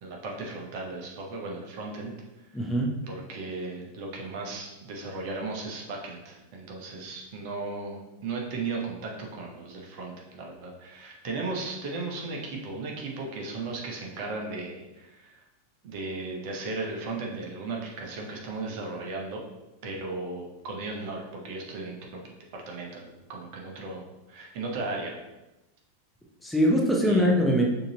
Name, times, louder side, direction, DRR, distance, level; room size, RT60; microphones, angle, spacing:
voice 1, 0.0-2.1 3.1-15.4 15.8-19.4 19.8-22.2 22.5-25.2 27.0-27.3, right 3 dB, 45° right, 0 dB, 1.0 m, -36 dB
voice 2, 2.5-3.0 26.4-27.7, equal, 5° left, 0 dB, 0.7 m, -22 dB
6.5 x 2.9 x 2.8 m, 1.0 s
figure-of-eight pair, 90°, 0 cm